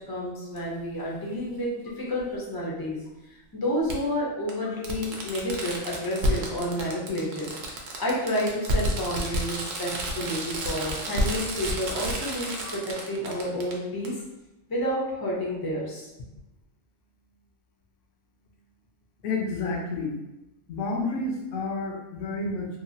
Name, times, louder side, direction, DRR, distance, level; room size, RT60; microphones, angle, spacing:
voice 1, 0.1-1.7 2.0-3.0 3.5-12.8 13.1-14.1 14.7-16.1, equal, 35° left, -4 dB, 0.4 m, -30 dB
Fireworks, 0.6-0.7 2.2-2.3 3.9-4.0 4.5-4.6 4.8-13.7 14.0-14.1, equal, 65° right, 0.7 m, -30 dB
voice 2, 19.2-20.2 20.7-22.7, left 3 dB, 75° left, 0 dB, 1.0 m, -30 dB
2.9 x 2.3 x 2.6 m, 0.96 s
omnidirectional pair, 1.3 m